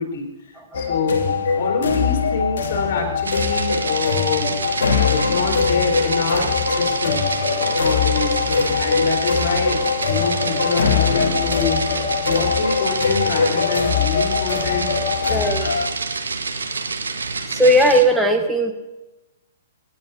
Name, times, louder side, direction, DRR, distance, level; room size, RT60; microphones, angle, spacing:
voice 1, 0.0-4.6 4.9-7.3 7.8-14.9, left 4 dB, 40° left, 1 dB, 4.1 m, -26 dB
sound 1, 0.7-15.9, left 5 dB, 55° left, 1.3 m, -22 dB
sound 2, 3.2-18.0, right 4 dB, 70° right, 1.4 m, -27 dB
voice 2, 15.3-15.7 17.5-18.7, equal, ahead, 2 dB, 1.3 m, -16 dB
25.5 x 9.7 x 2.8 m, 1.1 s
figure-of-eight pair, 115°, 0 cm